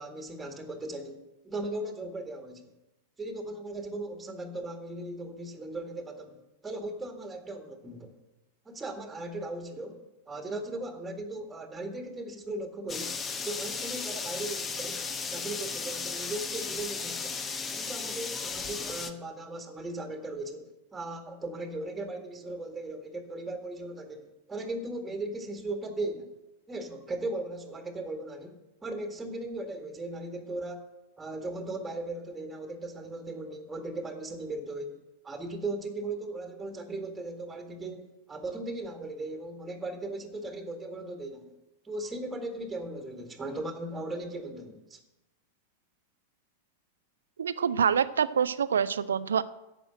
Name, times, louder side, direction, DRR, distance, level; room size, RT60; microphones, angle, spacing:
voice 1, 0.0-2.6 3.2-6.4 6.6-8.2 8.7-13.1 13.4-17.4 17.8-26.4 26.7-30.9 31.2-35.0 35.2-41.5 41.8-45.0, right 2 dB, 10° right, 5 dB, 1.9 m, -38 dB
sound 1, 12.9-19.1, left 5 dB, 20° left, 1.1 m, -35 dB
voice 2, 47.4-49.4, right 7 dB, 70° right, 16 dB, 0.6 m, -26 dB
11.0 x 7.7 x 8.8 m, 0.96 s
figure-of-eight pair, 90°, 0 cm